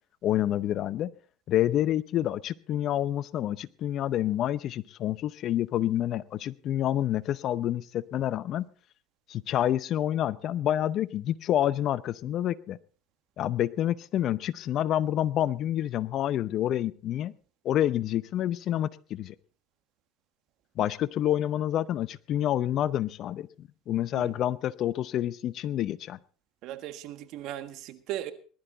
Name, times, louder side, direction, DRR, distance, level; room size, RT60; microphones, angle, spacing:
voice 1, 0.2-1.1 1.5-8.7 9.3-12.8 13.4-17.3 17.6-19.3 20.8-26.2, left 12 dB, 55° left, 18 dB, 0.7 m, -28 dB
voice 2, 26.6-28.3, right 12 dB, 65° right, 11 dB, 1.5 m, -37 dB
20.0 x 12.0 x 3.9 m, 0.40 s
supercardioid pair, 90°, 0 cm